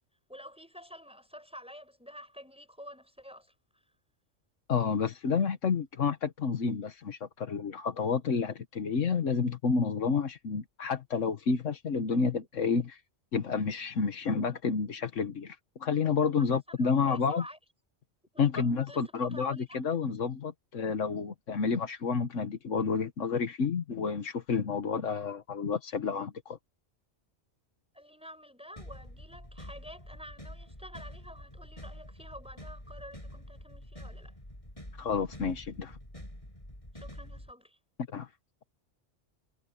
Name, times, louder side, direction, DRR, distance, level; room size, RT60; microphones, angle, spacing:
voice 1, 0.3-3.5 16.4-17.6 18.3-19.8 27.9-34.4 36.9-37.8, equal, 5° right, 5.5 m, -49 dB
voice 2, 4.7-13.0 13.3-17.4 18.4-26.6 35.0-36.0 38.1-38.3, left 5 dB, 85° left, 1.6 m, -30 dB
sound 1, 28.8-37.5, left 1 dB, 25° left, 8.3 m, -47 dB
omnidirectional pair, 1.3 m